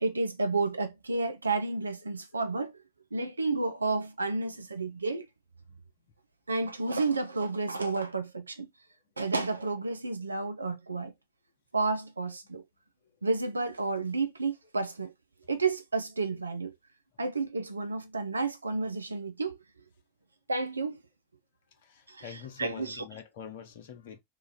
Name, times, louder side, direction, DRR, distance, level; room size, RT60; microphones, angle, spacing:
voice 1, 0.0-2.7 3.1-5.3 6.5-8.7 9.2-11.1 11.7-12.6 13.2-15.1 15.5-16.7 17.2-19.6 20.5-21.0 22.1-22.2 22.6-23.0, right 3 dB, 80° right, 0.5 m, -31 dB
voice 2, 21.7-24.2, left 8 dB, 55° left, 0.7 m, -45 dB
2.8 x 2.5 x 4.0 m
figure-of-eight pair, 90°, 0 cm